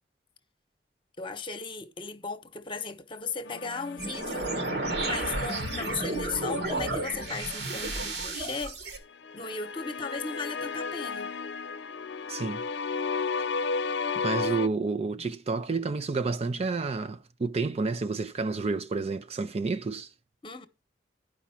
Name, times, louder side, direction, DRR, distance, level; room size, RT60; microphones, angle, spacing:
voice 1, 1.2-4.7 5.0-9.0 9.3-11.4 14.4-14.5 15.1-15.2 20.4-20.7, left 4 dB, 30° left, 1.0 m, -36 dB
sound 1, 3.5-7.8 9.2-14.7, left 4 dB, 90° left, 0.6 m, -34 dB
sound 2, 4.0-9.0, right 2 dB, 65° right, 1.6 m, -32 dB
voice 2, 12.3-12.6 14.2-20.1, right 4 dB, 35° right, 0.4 m, -30 dB
11.5 x 5.1 x 5.7 m
head